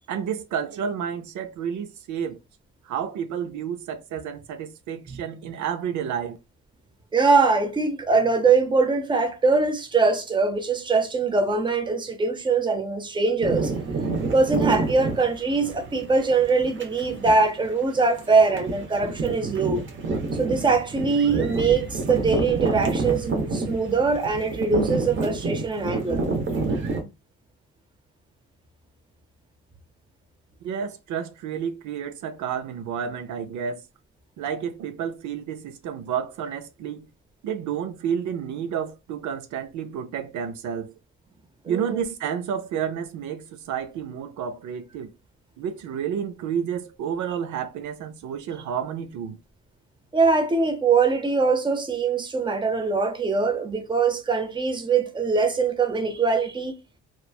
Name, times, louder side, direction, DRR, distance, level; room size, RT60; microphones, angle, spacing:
voice 1, 0.1-2.4 2.8-6.4 30.6-33.8 34.4-37.1 37.4-40.9 41.7-45.1 45.6-49.4, right 8 dB, 75° right, 0.5 m, -30 dB
voice 2, 7.1-13.7 14.2-19.8 20.3-26.2 41.6-42.0 50.1-56.7, right 4 dB, 15° right, 0.6 m, -22 dB
sound 1, 13.4-27.0, right 3 dB, 40° right, 0.8 m, -28 dB
3.0 x 2.2 x 2.3 m
cardioid pair, 90°, 30 cm